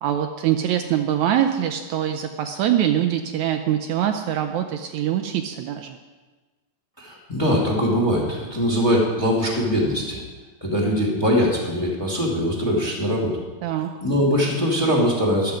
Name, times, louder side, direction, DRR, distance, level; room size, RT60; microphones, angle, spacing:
voice 1, 0.0-6.0 13.6-13.9, right 10 dB, 75° right, 6 dB, 1.9 m, -23 dB
voice 2, 7.0-10.2 10.6-13.3 14.0-15.5, equal, 10° left, -2 dB, 2.1 m, -22 dB
14.0 x 11.5 x 5.0 m, 1.3 s
omnidirectional pair, 3.6 m